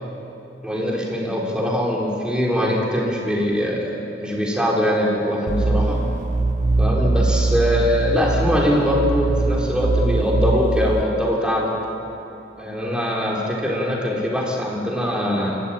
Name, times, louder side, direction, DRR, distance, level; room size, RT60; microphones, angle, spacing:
voice 1, 0.6-6.0 6.8-11.7 12.6-15.6, equal, 5° right, -3 dB, 4.1 m, -22 dB
sound 1, 5.5-11.0, right 2 dB, 45° right, 0.5 m, -21 dB
25.0 x 14.0 x 9.0 m, 2.8 s
head